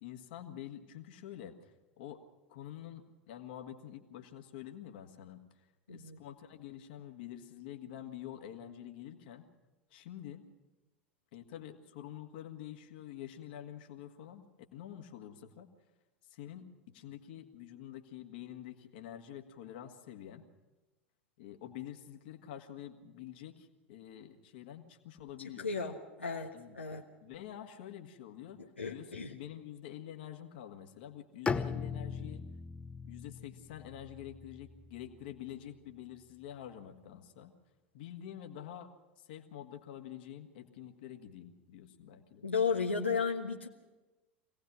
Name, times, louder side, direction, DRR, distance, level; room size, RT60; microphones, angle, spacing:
voice 1, 0.0-2.2 2.5-5.4 5.9-9.4 9.9-10.5 11.3-15.7 16.3-20.5 21.4-25.7 26.5-26.8 27.2-28.6 28.9-32.4 33.0-37.5 37.9-38.9 39.2-42.5, left 11 dB, 55° left, 5 dB, 1.9 m, -47 dB
voice 2, 5.9-6.2 25.6-27.0 28.6-29.3 42.4-43.7, left 5 dB, 80° left, 0 dB, 1.3 m, -34 dB
Bowed string instrument, 31.5-35.4, left 5 dB, 20° left, 0.9 m, -39 dB
25.5 x 18.0 x 6.2 m, 1.1 s
figure-of-eight pair, 80°, 6 cm